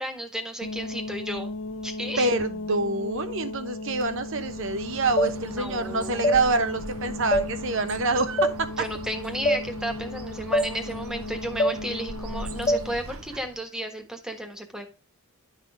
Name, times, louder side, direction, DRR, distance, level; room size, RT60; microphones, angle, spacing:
voice 1, 0.0-1.5 1.8-2.3 5.4-6.3 8.8-14.9, right 1 dB, 5° right, 4 dB, 1.4 m, -33 dB
sound 1, 0.6-13.0, left 2 dB, 80° left, 1.4 m, -36 dB
voice 2, 2.2-8.9, right 3 dB, 60° right, 9 dB, 1.0 m, -26 dB
Bird, 4.0-13.7, right 2 dB, 80° right, 1.0 m, -41 dB
sound 2, 5.2-5.3 6.2-6.4 7.3-7.5 8.4-8.5 9.5-9.6 10.5-10.7 11.6-11.8 12.7-12.8, equal, 25° left, 0.4 m, -22 dB
11.0 x 4.1 x 5.0 m, 0.32 s
head